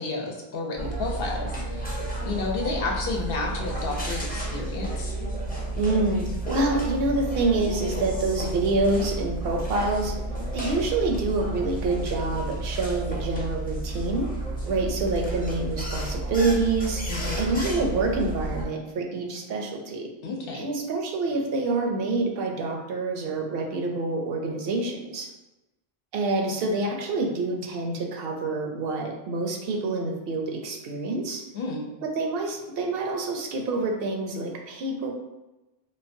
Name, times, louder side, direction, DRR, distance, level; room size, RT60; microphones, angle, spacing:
voice 1, 0.0-1.9 2.2-5.1 17.1-17.5 20.2-20.7 31.5-31.9, left 3 dB, 70° left, 0 dB, 0.8 m, -31 dB
sound 1, 0.8-18.6, right 2 dB, 10° left, 0.6 m, -31 dB
voice 2, 5.8-10.1 10.5-14.3 14.7-17.0 17.4-20.1 20.5-25.3 26.1-31.4 32.1-35.1, right 3 dB, 70° right, 2 dB, 0.8 m, -27 dB
3.8 x 2.1 x 2.6 m, 1.0 s
omnidirectional pair, 1.0 m